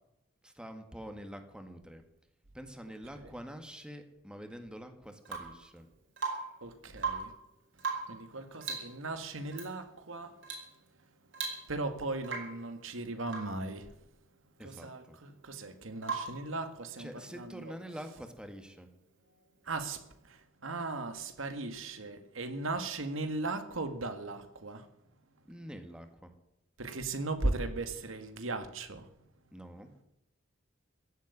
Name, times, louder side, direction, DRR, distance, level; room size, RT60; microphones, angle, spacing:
voice 1, 0.4-2.0 2.5-5.9 14.6-15.2 17.0-18.9 25.5-26.3 29.5-29.9, equal, 5° right, 1.9 m, -46 dB
Rain / Water tap faucet / Drip, 5.2-5.6 6.2-6.6 6.9-7.4 7.8-8.2 8.6-9.0 9.5-9.7 10.4-10.7 11.0-11.1 11.3-11.9 12.2-12.6 13.3-13.6 16.0-16.5 18.4-18.5, right 5 dB, 65° right, 5.0 m, -38 dB
voice 2, 6.6-7.3 8.1-10.4 11.7-13.9 14.6-17.7 19.6-24.9 26.8-29.1, right 2 dB, 90° right, 2.0 m, -37 dB
16.0 x 8.2 x 9.7 m
head